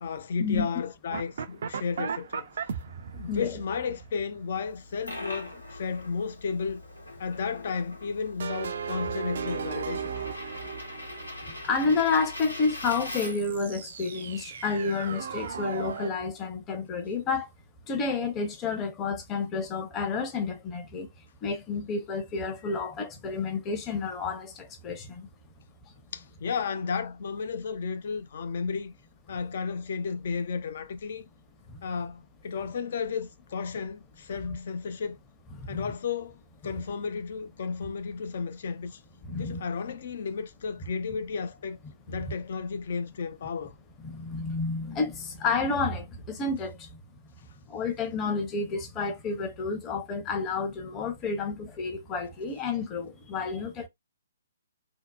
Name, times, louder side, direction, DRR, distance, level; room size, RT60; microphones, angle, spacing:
voice 1, 0.0-2.5 3.1-6.8 7.2-10.2 26.1-28.9 29.3-31.2 31.8-35.2 35.7-36.4 36.6-39.0 39.4-41.8 42.1-43.7, left 5 dB, 50° left, 0.5 m, -33 dB
sound 1, 1.1-5.2 8.4-12.2 13.2-16.1, right 7 dB, 55° right, 0.4 m, -37 dB
Coin (dropping), 4.7-13.6, left 1 dB, 90° left, 1.1 m, -42 dB
voice 2, 11.5-17.5 17.9-21.1 21.4-25.3 31.7-31.8 35.5-35.8 39.2-39.6 42.2-42.3 44.0-47.0 47.7-53.9, left 4 dB, 20° left, 0.8 m, -30 dB
2.8 x 2.0 x 2.3 m
figure-of-eight pair, 130°, 0 cm